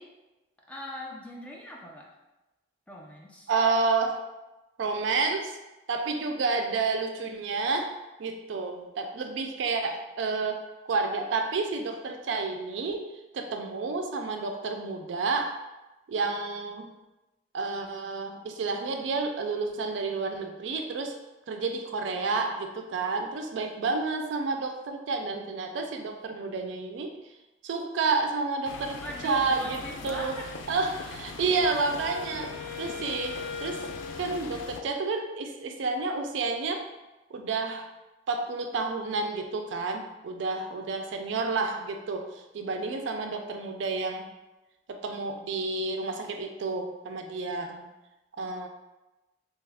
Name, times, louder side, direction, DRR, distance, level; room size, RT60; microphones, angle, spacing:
voice 1, 0.7-2.1 2.9-3.5 29.0-30.5, left 1 dB, 5° left, -2 dB, 0.4 m, -40 dB
voice 2, 3.5-4.3 4.8-5.6 5.9-7.9 8.2-15.6 16.1-16.9 17.5-21.2 21.5-27.1 27.6-30.4 30.7-33.9 34.2-36.9 37.3-37.9 38.3-44.3 44.9-47.9 48.4-48.7, right 3 dB, 65° right, 4 dB, 0.4 m, -30 dB
sound 1, 28.6-34.8, left 4 dB, 80° left, 0.3 m, -41 dB
Wind instrument woodwind instrument, 31.4-35.3, left 5 dB, 55° left, 0.7 m, -41 dB
2.9 x 2.3 x 3.3 m, 1.0 s
head